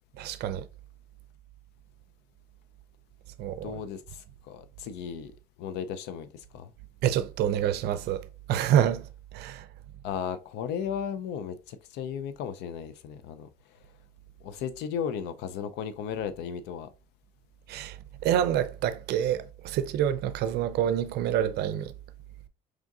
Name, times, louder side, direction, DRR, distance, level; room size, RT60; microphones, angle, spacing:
voice 1, 0.2-0.7 3.4-3.7 7.0-9.1 9.3-9.7 17.7-21.9, right 10 dB, 75° right, 0.5 m, -27 dB
voice 2, 3.6-5.3 5.6-6.3 6.5-6.7 10.0-13.5 14.4-16.9, left 7 dB, 85° left, 0.5 m, -35 dB
4.9 x 3.6 x 2.4 m
cardioid pair, 110°, 17 cm